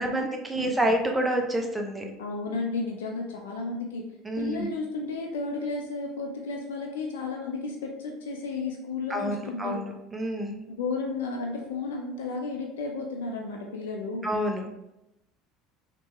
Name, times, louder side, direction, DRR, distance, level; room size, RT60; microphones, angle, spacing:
voice 1, 0.0-2.1 4.2-4.7 9.1-10.6 14.2-14.7, right 1 dB, 15° right, 2 dB, 0.7 m, -28 dB
voice 2, 2.2-4.0 4.4-9.8 10.7-14.3, left 3 dB, 90° left, 0 dB, 0.5 m, -33 dB
3.3 x 2.9 x 2.9 m, 0.87 s
supercardioid pair, 90°, 0 cm